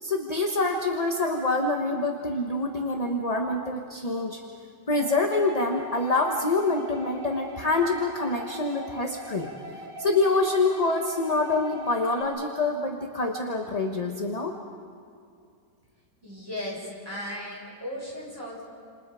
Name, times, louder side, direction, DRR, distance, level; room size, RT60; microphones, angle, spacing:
voice 1, 0.0-4.4 4.9-9.5 10.0-14.5, left 2 dB, 25° left, 2 dB, 1.2 m, -26 dB
sound 1, 4.9-12.2, equal, 85° right, 3.1 m, -41 dB
voice 2, 16.2-18.6, left 1 dB, 15° right, -4 dB, 6.9 m, -36 dB
29.5 x 28.0 x 5.0 m, 2.4 s
omnidirectional pair, 1.8 m